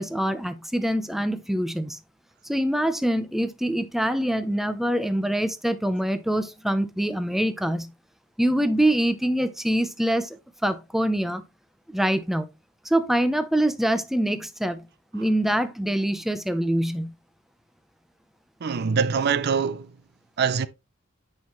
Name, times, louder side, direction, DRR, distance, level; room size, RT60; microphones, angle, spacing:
voice 1, 0.0-2.0 2.4-7.9 8.4-11.4 11.9-12.5 12.8-14.8 15.1-17.1, right 1 dB, ahead, 0.6 m, -24 dB
voice 2, 18.6-19.9 20.4-20.7, right 6 dB, 55° right, 0.5 m, -24 dB
8.9 x 5.5 x 3.0 m
head